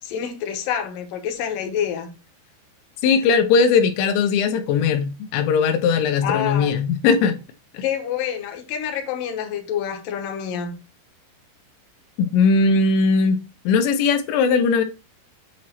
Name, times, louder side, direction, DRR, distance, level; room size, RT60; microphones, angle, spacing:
voice 1, 0.0-2.1 6.2-6.8 7.8-10.8, left 8 dB, 70° left, 2.2 m, -27 dB
voice 2, 3.0-7.4 7.7-7.8 12.2-13.4 13.7-14.8, left 5 dB, 85° left, 2.9 m, -19 dB
8.4 x 3.0 x 4.4 m
omnidirectional pair, 5.3 m